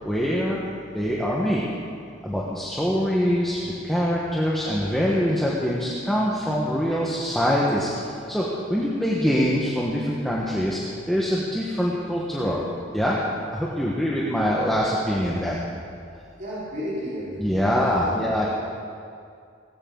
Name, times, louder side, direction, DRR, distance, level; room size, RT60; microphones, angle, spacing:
voice 1, 0.0-0.6 0.9-1.6 2.2-10.8 11.1-12.6 12.9-13.2 13.5-15.6 17.4-18.5, equal, ahead, -6 dB, 1.4 m, -24 dB
voice 2, 16.4-18.5, equal, 45° right, -10 dB, 4.8 m, -33 dB
18.5 x 17.0 x 4.0 m, 2.3 s
head